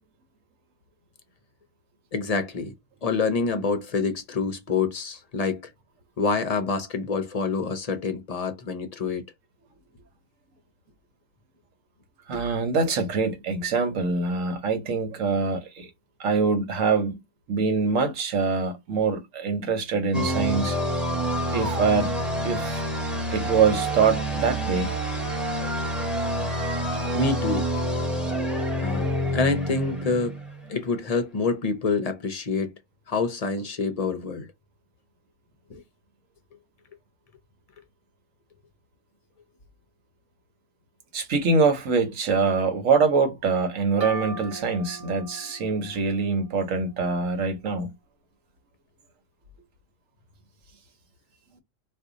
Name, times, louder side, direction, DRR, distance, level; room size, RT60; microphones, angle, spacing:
voice 1, 2.1-2.7 3.0-5.6 6.2-9.2 27.1-27.7 28.8-30.4 30.7-32.7 33.1-34.5 35.7-35.8, left 4 dB, 45° left, 0.5 m, -27 dB
voice 2, 12.3-15.9 16.2-17.2 17.5-20.8 21.5-22.2 22.4-22.8 23.3-24.9 41.1-47.9, right 4 dB, 80° right, 1.3 m, -24 dB
sound 1, 20.1-30.8, equal, ahead, 0.7 m, -27 dB
sound 2, 44.0-47.6, right 2 dB, 55° right, 0.9 m, -40 dB
2.7 x 2.4 x 3.6 m
omnidirectional pair, 1.3 m